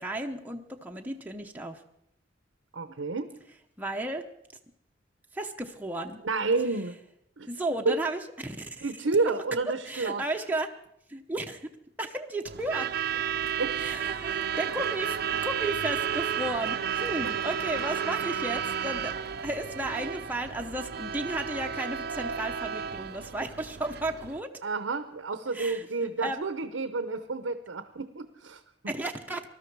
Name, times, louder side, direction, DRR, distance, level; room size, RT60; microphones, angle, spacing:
voice 1, 0.0-1.8 3.8-4.2 5.3-6.2 7.5-8.8 9.9-10.7 11.1-11.7 12.0-12.9 13.8-15.2 15.4-19.1 19.4-24.5 25.5-25.9 26.2-26.5 28.9-29.5, right 2 dB, 10° right, 2 dB, 0.8 m, -34 dB
voice 2, 2.7-3.3 6.2-7.0 7.4-7.5 7.8-8.0 8.8-10.2 13.1-13.2 13.6-13.8 17.2-17.3 24.6-28.9, right 3 dB, 85° right, 10 dB, 0.8 m, -30 dB
Truck / Alarm, 12.5-24.4, right 8 dB, 55° right, 0.6 m, -32 dB
19.5 x 13.0 x 4.7 m, 0.74 s
head